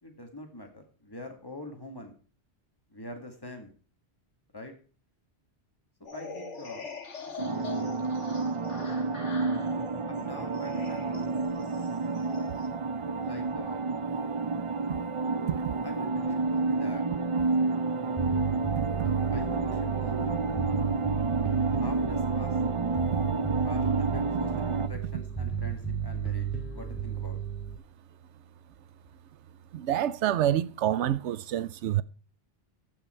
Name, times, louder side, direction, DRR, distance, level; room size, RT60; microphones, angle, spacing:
voice 1, 0.0-2.1 2.9-3.7 4.5-4.7 6.1-6.9 7.3-7.9 10.1-11.4 13.2-13.8 15.8-17.1 19.3-20.6 21.8-22.6 23.7-27.4, left 1 dB, 20° left, 2.1 m, -44 dB
sound 1, 6.0-12.7, left 4 dB, 90° left, 2.0 m, -43 dB
sound 2, 7.4-24.9, right 3 dB, 45° right, 0.4 m, -30 dB
Bass guitar, 18.2-27.8, right 7 dB, ahead, 2.4 m, -33 dB
voice 2, 29.7-32.0, right 11 dB, 80° right, 0.9 m, -27 dB
15.0 x 5.8 x 4.4 m
omnidirectional pair, 1.2 m